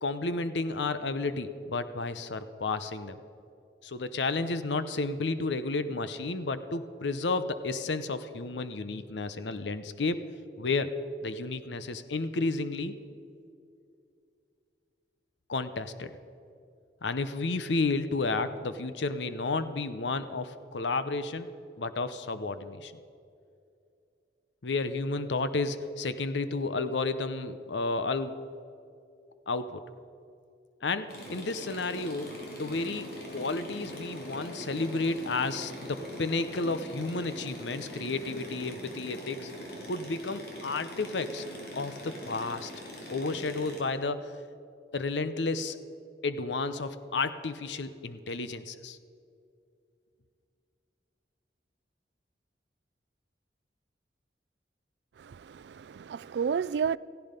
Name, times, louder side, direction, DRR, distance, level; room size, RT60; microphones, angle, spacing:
voice 1, 0.0-3.2 3.8-10.2 10.6-13.0 15.5-16.1 17.0-21.5 21.8-22.9 24.6-28.4 29.5-29.8 30.8-32.3 32.6-39.5 39.9-41.4 41.7-42.7 43.1-44.4 44.9-45.8 46.2-49.0, left 3 dB, 85° left, 0.8 m, -32 dB
sound 1, 31.1-43.8, equal, 60° left, 3.2 m, -43 dB
voice 2, 55.2-57.0, right 6 dB, 75° right, 0.3 m, -31 dB
16.5 x 15.5 x 5.2 m
head